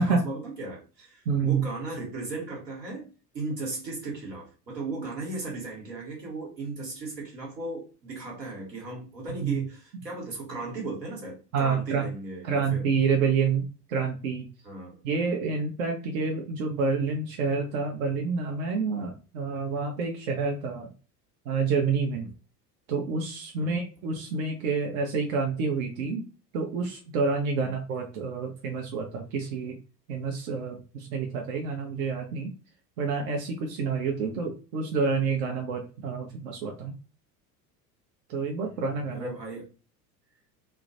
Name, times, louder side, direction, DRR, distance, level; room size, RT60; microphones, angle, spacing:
voice 1, 0.0-3.1 3.3-12.8 14.6-15.0 22.1-22.3 23.6-23.8 27.6-27.7 38.6-39.7, right 3 dB, 80° right, -2 dB, 1.2 m, -36 dB
voice 2, 1.3-1.6 9.4-9.6 11.5-12.0 12.4-14.5 15.0-20.9 21.5-22.3 22.9-26.2 26.5-29.8 30.1-32.5 33.0-36.9 38.3-39.3, right 5 dB, 60° right, 2 dB, 0.6 m, -28 dB
2.2 x 2.1 x 2.7 m, 0.34 s
figure-of-eight pair, 70°, 49 cm